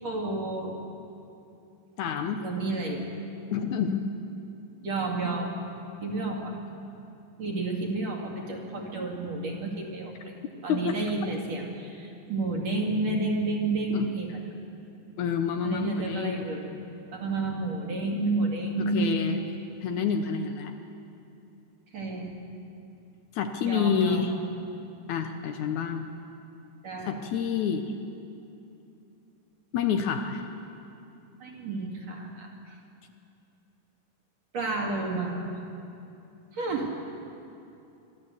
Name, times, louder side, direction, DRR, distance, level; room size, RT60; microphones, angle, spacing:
voice 1, 0.0-0.8 2.4-3.0 4.8-5.6 6.0-6.6 7.4-10.3 10.6-14.4 15.6-16.7 17.1-19.3 21.9-22.3 23.7-24.3 26.8-27.1 31.4-32.7 34.5-35.6 36.5-36.9, right 3 dB, 55° right, 0 dB, 3.4 m, -30 dB
voice 2, 2.0-2.4 3.5-4.2 10.7-11.0 13.9-14.1 15.2-16.5 18.9-19.4 19.8-20.7 23.3-24.3 25.1-26.1 27.1-27.8 29.7-30.4, left 7 dB, 70° left, 6 dB, 2.1 m, -28 dB
23.5 x 13.5 x 8.1 m, 2.8 s
omnidirectional pair, 3.8 m